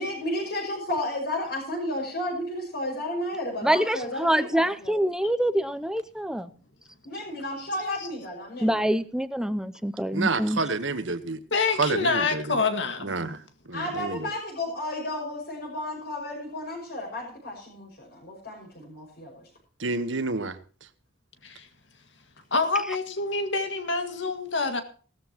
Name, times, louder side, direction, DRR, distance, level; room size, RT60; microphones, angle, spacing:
voice 1, 0.0-5.0 7.0-8.8 13.7-19.5, left 1 dB, 60° left, -4 dB, 6.1 m, -33 dB
voice 2, 3.6-6.5 8.6-10.6, right 1 dB, 5° right, 13 dB, 0.5 m, -25 dB
voice 3, 10.1-11.4 11.8-12.4 13.0-13.4 13.7-14.2 19.8-20.6, right 3 dB, 85° right, 11 dB, 1.3 m, -28 dB
voice 4, 11.5-13.1 21.4-21.7 22.5-24.8, left 3 dB, 75° left, 7 dB, 2.0 m, -26 dB
18.0 x 13.5 x 3.0 m, 0.40 s
head